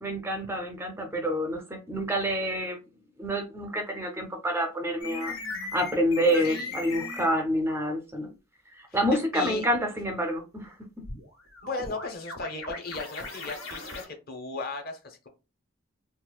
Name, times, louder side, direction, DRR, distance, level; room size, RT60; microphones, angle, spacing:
voice 1, 0.0-2.8 3.2-8.3 8.7-10.8, equal, 10° right, 4 dB, 0.4 m, -28 dB
sound 1, 5.0-7.3 11.0-14.0, left 3 dB, 75° left, 1.5 m, -38 dB
voice 2, 6.4-6.7 8.9-9.0 9.3-9.6 11.6-15.3, left 3 dB, 45° left, 4 dB, 0.7 m, -36 dB
4.0 x 2.4 x 2.2 m, 0.29 s
head